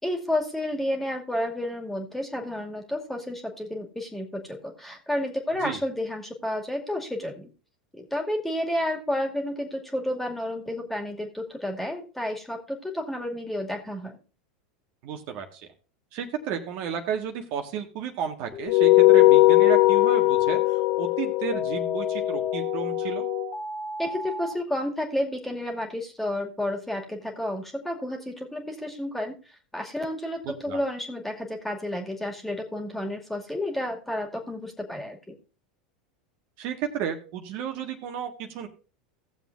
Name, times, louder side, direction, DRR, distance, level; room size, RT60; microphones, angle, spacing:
voice 1, 0.0-7.5 7.9-14.2 24.0-29.4 29.7-35.4, left 1 dB, 5° left, 2 dB, 2.3 m, -31 dB
voice 2, 15.0-15.7 16.1-23.3 30.4-30.8 36.6-38.7, right 8 dB, 55° right, 4 dB, 1.8 m, -33 dB
sound 1, 18.5-24.5, left 3 dB, 35° left, 2.0 m, -36 dB
sound 2, 18.7-23.5, left 21 dB, 60° left, 0.9 m, -20 dB
17.0 x 7.3 x 2.6 m, 0.35 s
hypercardioid pair, 90°, 4 cm